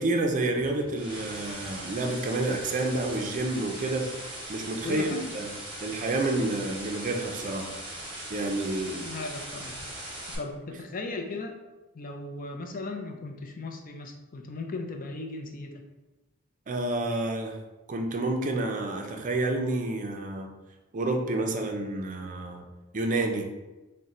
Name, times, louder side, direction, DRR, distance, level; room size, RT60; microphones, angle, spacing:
voice 1, 0.0-4.1 4.5-5.5 5.8-7.7 8.3-9.0 16.7-17.6 17.9-20.5 20.9-22.6 22.9-23.5, right 2 dB, 40° right, 3 dB, 0.4 m, -29 dB
sound 1, 0.6-10.4, right 1 dB, 25° right, 0.9 m, -40 dB
voice 2, 4.8-5.2 9.0-9.8 10.4-11.6 11.9-15.8, left 3 dB, 40° left, 4 dB, 0.5 m, -37 dB
3.6 x 2.2 x 4.1 m, 1.1 s
head